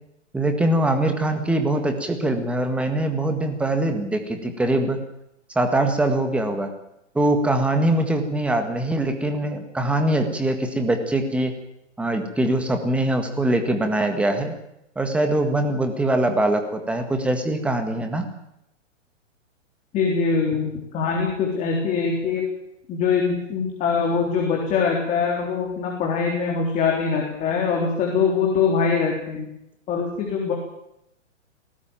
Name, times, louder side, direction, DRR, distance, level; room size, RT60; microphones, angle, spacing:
voice 1, 0.3-5.0 5.5-6.7 7.1-11.5 12.0-14.5 14.9-18.2, right 1 dB, 5° right, 6 dB, 1.7 m, -22 dB
voice 2, 19.9-22.5 22.9-29.5 29.9-30.5, left 5 dB, 20° left, 0 dB, 3.7 m, -23 dB
19.5 x 18.0 x 9.0 m, 0.81 s
hypercardioid pair, 160°, 38 cm